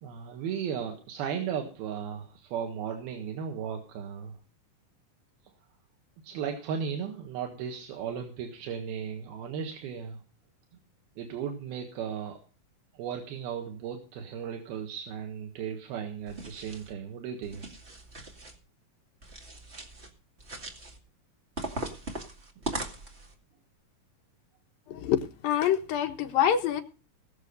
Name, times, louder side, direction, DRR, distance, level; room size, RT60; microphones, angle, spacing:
voice 1, 0.0-4.4 6.2-10.2 11.2-12.4 12.9-17.7 22.6-22.7, right 7 dB, 90° right, 3 dB, 3.4 m, -36 dB
sound 1, 16.3-16.9 17.4-18.6 19.2-20.1 20.4-21.0 21.6-23.3, right 1 dB, 20° right, 2.0 m, -39 dB
voice 2, 24.9-26.8, left 9 dB, 75° left, 5 dB, 3.1 m, -26 dB
20.5 x 7.1 x 5.3 m, 0.36 s
omnidirectional pair, 4.2 m